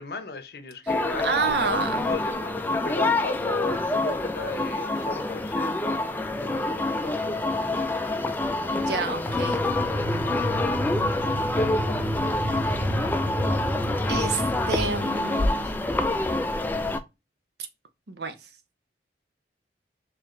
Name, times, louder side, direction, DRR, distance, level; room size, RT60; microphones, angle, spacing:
voice 1, 0.0-5.8 6.4-7.5 10.1-10.4 11.5-12.0 15.6-15.7, left 3 dB, 60° left, 0.7 m, -36 dB
sound 1, 0.9-17.0, left 2 dB, 10° left, 0.3 m, -27 dB
voice 2, 1.2-2.1 8.7-9.6 12.7-12.8 14.1-15.8 18.1-18.3, right 4 dB, 65° right, 0.7 m, -29 dB
sound 2, 9.3-15.0, equal, 25° right, 0.7 m, -30 dB
4.0 x 2.9 x 3.1 m
head